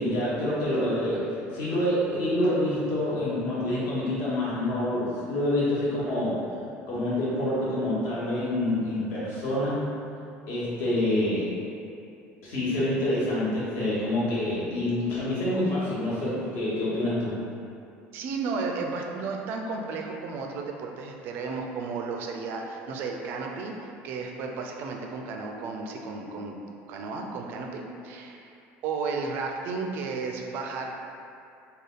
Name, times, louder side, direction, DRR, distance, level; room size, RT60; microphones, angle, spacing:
voice 1, 0.0-6.3 6.9-9.8 10.5-11.5 12.4-17.3, left 1 dB, 55° left, -8 dB, 1.1 m, -27 dB
voice 2, 18.1-26.6 26.9-28.5 28.8-30.9, right 4 dB, 45° right, 2 dB, 0.3 m, -33 dB
3.3 x 2.2 x 3.8 m, 2.5 s
cardioid pair, 175°, 5 cm